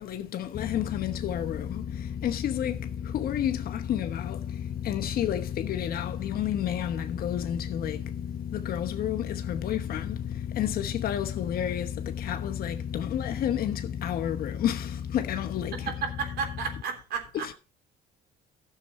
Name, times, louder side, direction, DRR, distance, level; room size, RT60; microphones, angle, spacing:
voice 1, 0.0-8.1 8.5-15.9 17.3-17.5, left 10 dB, 60° left, 1.1 m, -31 dB
sound 1, 0.5-16.8, left 8 dB, 35° left, 0.5 m, -35 dB
voice 2, 15.7-17.5, right 6 dB, 70° right, 3.3 m, -33 dB
13.0 x 6.9 x 4.3 m
cardioid pair, 110°, 17 cm